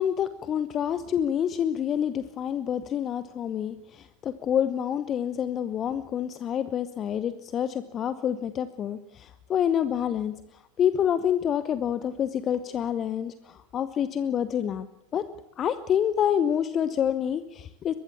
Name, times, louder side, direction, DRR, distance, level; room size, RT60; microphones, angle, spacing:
voice 1, 0.0-10.3 10.8-14.9 15.1-15.2 15.6-17.9, left 9 dB, 25° left, 13 dB, 0.9 m, -27 dB
23.5 x 19.5 x 7.1 m, 0.82 s
figure-of-eight pair, 90°, 0 cm